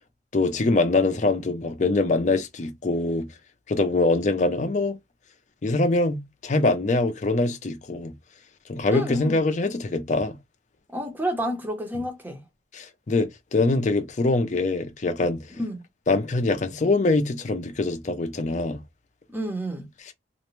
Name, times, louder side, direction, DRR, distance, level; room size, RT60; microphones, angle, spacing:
voice 1, 0.3-3.3 3.7-5.0 5.6-8.1 8.7-10.3 12.7-15.4 16.1-18.8, left 2 dB, 40° left, 0.5 m, -23 dB
voice 2, 8.9-9.4 10.9-12.4 15.5-15.8 19.3-19.9, equal, 10° right, 0.7 m, -30 dB
2.5 x 2.1 x 3.0 m
head